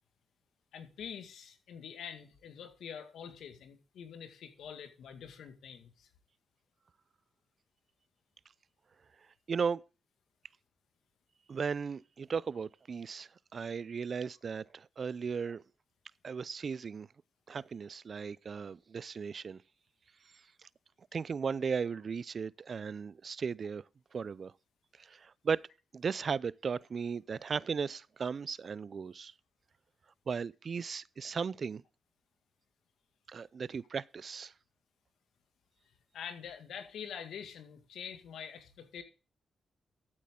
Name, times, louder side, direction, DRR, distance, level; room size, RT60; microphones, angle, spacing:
voice 1, 0.7-6.1 36.1-39.0, left 7 dB, 85° left, 2.0 m, -46 dB
voice 2, 9.5-9.8 11.5-15.6 16.2-17.1 17.5-19.6 21.1-23.8 24.1-24.5 25.0-25.7 25.9-29.3 30.3-31.8 33.3-34.5, right 6 dB, 55° right, 0.4 m, -36 dB
13.5 x 8.5 x 3.8 m
cardioid pair, 70°, 0 cm